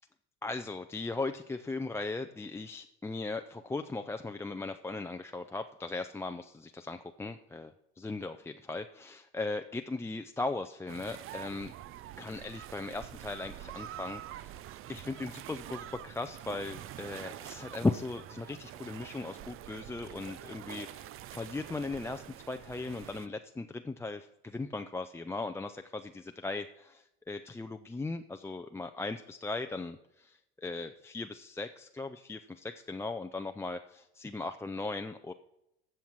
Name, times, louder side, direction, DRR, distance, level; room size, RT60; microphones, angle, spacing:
voice 1, 0.4-11.7 12.2-14.5 14.9-35.3, left 3 dB, 10° left, 6 dB, 0.4 m, -38 dB
sound 1, 10.9-23.3, right 12 dB, 45° right, 0.5 m, -46 dB
15.5 x 5.7 x 4.6 m, 0.88 s
hypercardioid pair, 80°, 29 cm